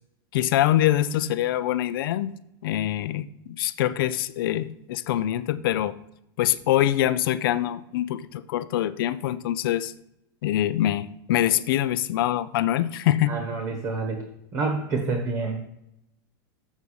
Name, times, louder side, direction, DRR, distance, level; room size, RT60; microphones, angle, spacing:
voice 1, 0.3-2.3 2.6-5.9 6.4-9.9 10.4-13.4, left 13 dB, 70° left, 0.5 m, -24 dB
voice 2, 13.3-14.2 14.5-15.6, right 3 dB, 30° right, 1.1 m, -28 dB
7.3 x 5.3 x 6.4 m
supercardioid pair, 170°, 12 cm